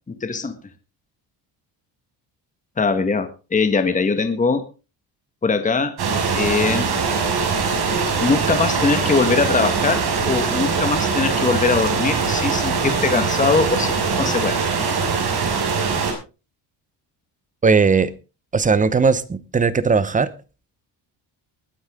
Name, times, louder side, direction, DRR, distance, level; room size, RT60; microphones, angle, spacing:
voice 1, 0.1-0.6 2.8-4.6 5.4-5.9 6.3-6.9 8.2-14.7, left 4 dB, 20° left, 1.5 m, -21 dB
sound 1, 6.0-16.1, right 5 dB, 65° right, 6.0 m, -22 dB
voice 2, 17.6-18.1 18.5-20.3, right 5 dB, 20° right, 0.9 m, -18 dB
20.5 x 9.4 x 3.7 m
cardioid pair, 150°, 42 cm